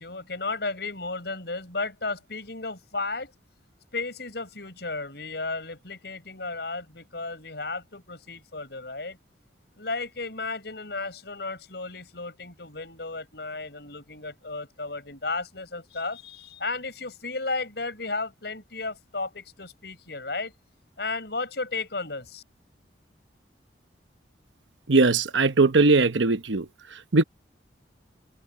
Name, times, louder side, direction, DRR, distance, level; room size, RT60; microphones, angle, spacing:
voice 1, 0.0-3.3 3.9-9.2 9.8-20.5 21.0-22.4, left 3 dB, 60° left, 5.9 m, -34 dB
voice 2, 24.9-26.7 27.1-27.2, right 3 dB, 85° right, 1.0 m, -19 dB
head